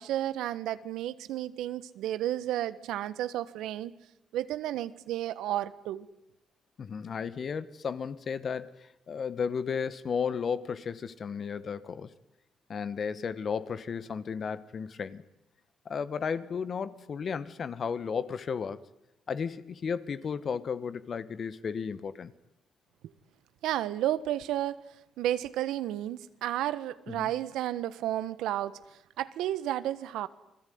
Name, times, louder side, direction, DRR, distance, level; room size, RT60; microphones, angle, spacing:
voice 1, 0.0-3.9 4.3-6.1 23.6-24.8 25.2-28.8 29.2-30.3, right 13 dB, 90° right, 14 dB, 1.3 m, -32 dB
voice 2, 6.8-12.1 12.7-15.2 15.8-18.8 19.3-22.3 27.1-27.3, left 6 dB, 50° left, 14 dB, 1.6 m, -34 dB
29.5 x 21.0 x 9.5 m, 0.85 s
cardioid pair, 90°, 0 cm